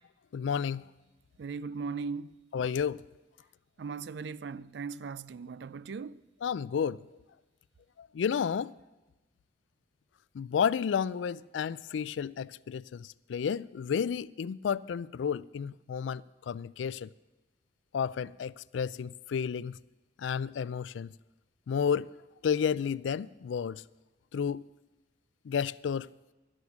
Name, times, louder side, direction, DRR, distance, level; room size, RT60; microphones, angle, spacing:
voice 1, 0.3-0.9 2.5-3.0 6.4-7.0 8.0-8.7 10.3-17.1 17.9-19.8 20.2-21.1 21.7-22.1 22.4-23.8 24.3-24.6 25.5-26.1, left 7 dB, 85° left, 0.3 m, -31 dB
voice 2, 1.4-2.3 3.8-6.2, right 5 dB, 65° right, 0.4 m, -38 dB
11.5 x 9.6 x 7.3 m
head